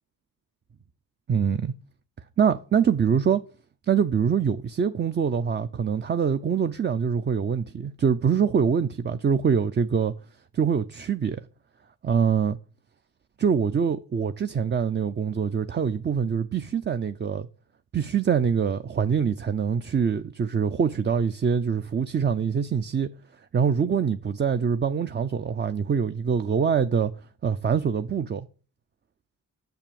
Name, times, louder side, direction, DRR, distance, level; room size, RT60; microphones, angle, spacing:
voice 1, 1.3-1.7 2.4-3.4 3.9-10.1 10.5-11.4 12.0-12.6 13.4-17.5 17.9-23.1 23.5-27.1 27.4-28.5, right 7 dB, 30° right, 0.5 m, -24 dB
6.7 x 5.8 x 6.9 m
cardioid pair, 60°, 36 cm